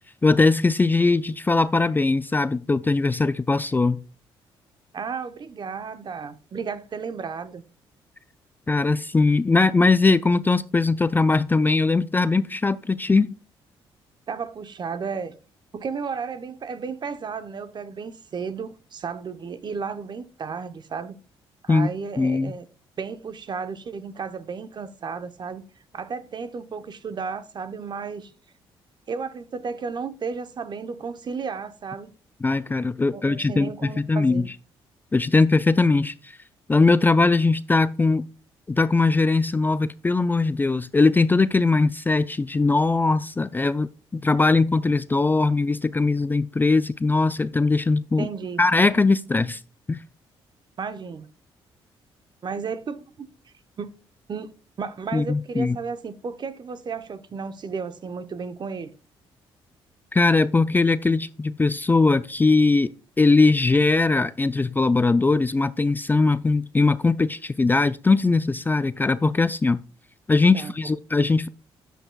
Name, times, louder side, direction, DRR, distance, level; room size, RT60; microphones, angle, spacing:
voice 1, 0.2-4.0 8.7-13.3 21.7-21.9 22.2-22.5 32.4-34.5 35.1-36.1 36.7-38.3 38.7-48.3 48.6-49.6 49.9-50.0 55.1-55.8 60.1-62.9 63.2-69.8 70.3-71.5, left 3 dB, 20° left, 0.4 m, -20 dB
voice 2, 4.9-7.6 14.3-15.3 15.7-21.2 21.6-22.7 23.0-25.6 25.9-28.3 29.1-32.1 33.1-34.5 48.2-48.6 50.8-51.3 52.4-53.3 53.8-53.9 54.3-54.5 54.8-58.9 70.5-70.7, right 5 dB, 45° right, 0.8 m, -33 dB
10.0 x 7.7 x 2.3 m
cardioid pair, 80°, 10 cm